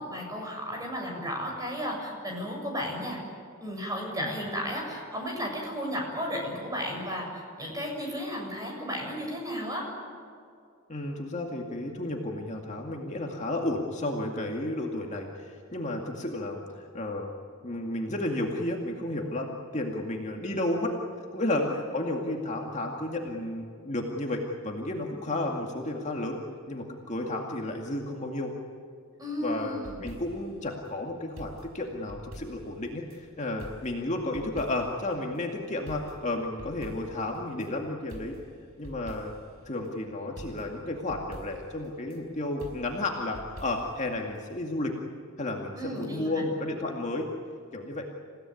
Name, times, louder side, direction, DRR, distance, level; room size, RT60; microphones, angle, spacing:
voice 1, 0.0-3.2 3.6-9.9 21.5-21.7 29.2-30.0 45.7-46.4, equal, 15° right, 0 dB, 7.2 m, -34 dB
voice 2, 10.9-17.3 17.6-20.9 21.3-26.4 26.7-28.5 29.4-38.4 38.8-39.3 39.7-44.9 45.4-47.3 47.7-48.1, left 1 dB, 35° left, 0 dB, 2.2 m, -32 dB
sound 1, 29.5-30.6 31.4-33.2 33.6-35.1 35.3-35.4 35.9-37.7 38.1-39.6 39.8-39.9 40.4-42.2 42.6-44.1 44.4-44.5, right 1 dB, 70° right, 5.6 m, -46 dB
28.5 x 17.0 x 9.5 m, 2.4 s
head